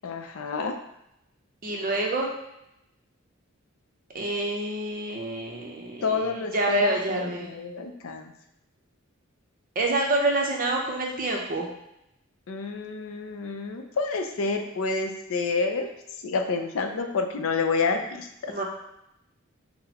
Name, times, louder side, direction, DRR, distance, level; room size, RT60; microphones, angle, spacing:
voice 1, 0.0-0.7 6.0-8.3 12.5-15.9 16.2-18.5, left 4 dB, 75° left, 5 dB, 0.5 m, -29 dB
voice 2, 1.6-2.3 4.1-7.5 9.8-11.7 18.5-18.6, right 2 dB, 40° right, 0 dB, 0.6 m, -27 dB
5.7 x 2.0 x 2.9 m, 0.82 s
head